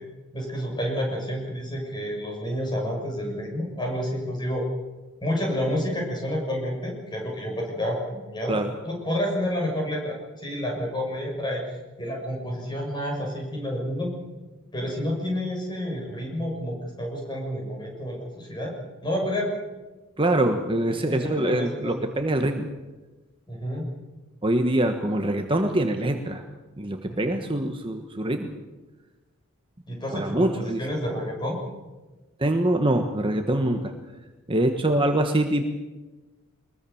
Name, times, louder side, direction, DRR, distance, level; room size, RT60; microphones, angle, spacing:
voice 1, 0.3-4.7 5.2-8.6 8.8-11.6 12.0-14.1 14.7-18.7 19.0-19.5 20.9-22.0 23.5-23.8 29.9-31.6, equal, 20° left, 0 dB, 6.9 m, -29 dB
voice 2, 20.2-22.7 24.4-26.4 26.8-28.5 30.1-30.8 32.4-33.9 34.5-35.6, right 1 dB, 25° right, 5 dB, 1.3 m, -24 dB
23.5 x 21.0 x 7.1 m, 1.2 s
head